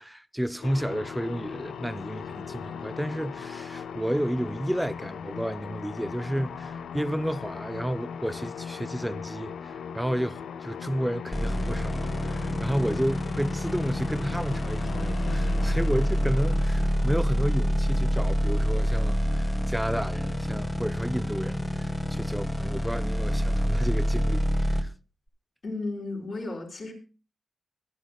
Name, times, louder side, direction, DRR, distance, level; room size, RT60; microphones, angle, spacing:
voice 1, 0.0-24.9, equal, 5° right, 0.6 m, -31 dB
sound 1, 0.6-18.9, left 7 dB, 85° left, 0.5 m, -39 dB
sound 2, 11.3-24.8, equal, 10° left, 1.2 m, -27 dB
voice 2, 25.6-26.9, left 2 dB, 55° left, 4.4 m, -34 dB
23.0 x 9.4 x 2.3 m
cardioid pair, 80°, 0 cm